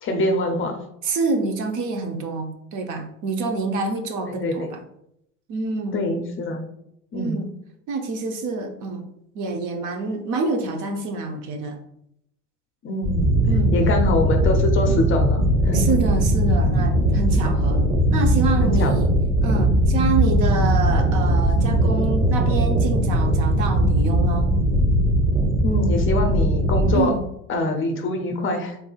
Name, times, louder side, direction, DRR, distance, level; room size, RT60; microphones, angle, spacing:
voice 1, 0.0-0.8 4.3-4.7 5.9-6.6 7.1-7.4 12.8-13.3 13.7-15.8 18.6-18.9 25.6-27.1 27.5-28.7, left 2 dB, 30° left, 4 dB, 0.6 m, -24 dB
voice 2, 1.0-4.8 5.5-6.1 7.1-7.5 7.9-9.1 9.3-11.8 13.5-13.8 15.7-19.1 19.4-24.5 26.9-27.3, right 3 dB, 45° right, 5 dB, 0.7 m, -27 dB
sound 1, 13.0-27.0, right 1 dB, 15° right, 1.0 m, -19 dB
3.6 x 3.3 x 2.3 m, 0.77 s
hypercardioid pair, 80°, 43 cm